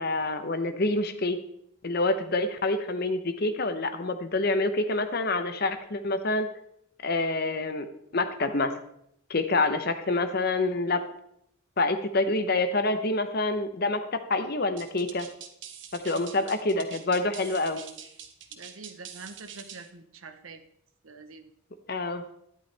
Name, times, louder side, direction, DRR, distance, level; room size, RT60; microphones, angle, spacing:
voice 1, 0.0-1.4 1.8-6.5 7.0-7.9 8.1-8.7 9.3-11.0 11.8-15.3 15.9-17.8 21.9-22.2, left 2 dB, 45° left, 9 dB, 0.8 m, -27 dB
sound 1, 14.8-19.9, right 8 dB, 60° right, 1.1 m, -45 dB
voice 2, 18.5-20.6 21.0-21.5, right 4 dB, 80° right, 9 dB, 0.9 m, -46 dB
12.0 x 11.0 x 3.4 m, 0.72 s
head